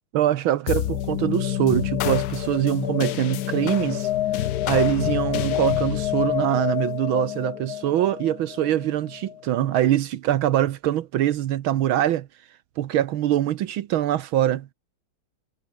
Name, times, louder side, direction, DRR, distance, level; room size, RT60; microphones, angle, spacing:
voice 1, 0.1-12.3 12.8-14.7, right 12 dB, 80° right, 1.7 m, -23 dB
sound 1, 0.7-9.4, left 12 dB, 65° left, 1.0 m, -27 dB
omnidirectional pair, 2.3 m